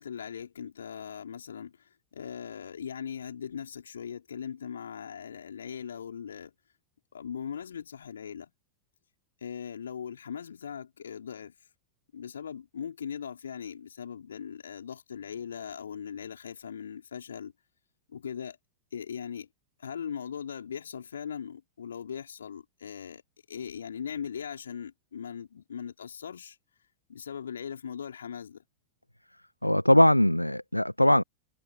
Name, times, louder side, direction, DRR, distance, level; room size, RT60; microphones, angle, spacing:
voice 1, 0.0-1.8 2.1-6.5 7.1-8.5 9.4-11.5 12.1-17.5 18.1-18.6 18.9-19.5 19.8-23.2 23.5-26.6 27.1-28.6, left 7 dB, 70° left, 4.7 m, -39 dB
voice 2, 29.6-31.2, left 1 dB, 90° left, 1.3 m, -21 dB
figure-of-eight pair, 90°, 0 cm